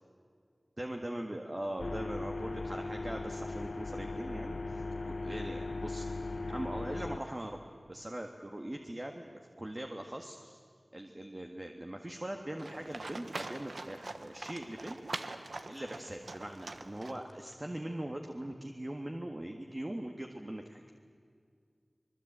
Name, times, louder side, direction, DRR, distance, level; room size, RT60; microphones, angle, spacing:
voice 1, 0.8-6.1 6.5-7.6 7.9-9.3 9.6-10.6 10.9-15.0 15.7-20.8, right 1 dB, 30° right, 3 dB, 1.8 m, -41 dB
sound 1, 1.8-7.2, left 3 dB, 70° left, 0.7 m, -38 dB
Livestock farm animals working animals, 12.6-17.5, right 2 dB, 85° right, 1.3 m, -43 dB
25.5 x 22.0 x 8.9 m, 2.2 s
wide cardioid pair, 55°, 0 cm